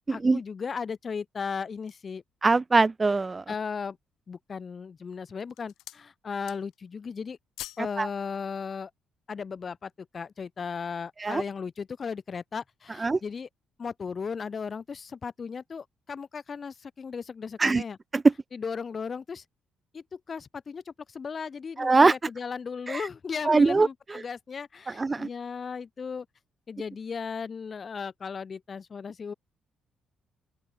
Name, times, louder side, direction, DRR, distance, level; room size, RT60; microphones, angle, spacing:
voice 1, 0.1-2.2 3.5-4.0 4.3-7.4 7.8-8.9 9.3-13.5 13.8-18.0 18.5-19.4 19.9-26.3 26.7-29.3, left 5 dB, 40° left, 4.0 m, -36 dB
sound 1, 1.5-2.2 2.8-2.9 3.3-3.9 4.6-5.0 5.3-6.1 6.3-6.9 7.2-7.9 8.2-8.4, left 15 dB, 90° left, 3.3 m, -46 dB
voice 2, 2.4-3.4 8.0-8.1 11.2-11.4 13.0-13.2 17.6-17.8 21.8-22.1 22.9-23.0 23.5-23.9 25.0-25.3, right 3 dB, 25° right, 0.6 m, -21 dB
open air
cardioid pair, 90°, 0 cm